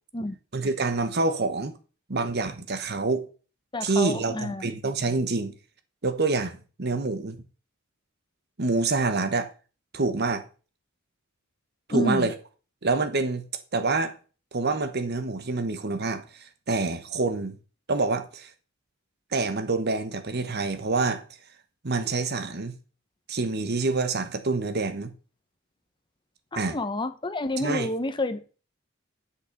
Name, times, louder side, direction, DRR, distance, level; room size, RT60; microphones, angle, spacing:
voice 1, 0.5-1.7 2.1-3.3 3.8-5.5 6.0-7.4 8.6-9.5 9.9-10.4 11.9-12.3 12.8-13.4 13.7-14.1 14.5-17.6 17.9-18.5 19.3-21.2 21.8-22.7 23.3-25.1 26.6-26.8 27.6-27.9, right 3 dB, 50° right, 1.1 m, -27 dB
voice 2, 3.7-4.7 11.9-12.3 26.5-28.6, left 2 dB, 25° left, 0.8 m, -29 dB
7.9 x 7.0 x 6.6 m
head